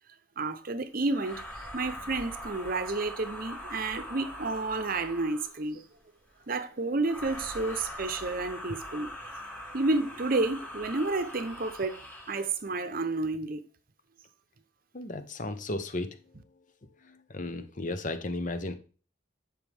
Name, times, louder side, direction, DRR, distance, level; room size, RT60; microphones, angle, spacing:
voice 1, 0.4-1.4 1.7-5.8 6.5-9.1 9.7-12.0 12.3-13.6, right 3 dB, 45° right, 0.8 m, -30 dB
sound 1, 1.1-5.6 7.0-12.5, equal, 10° left, 2.9 m, -42 dB
voice 2, 14.9-16.2 17.0-18.7, left 2 dB, 40° left, 0.9 m, -34 dB
10.5 x 5.2 x 3.5 m
head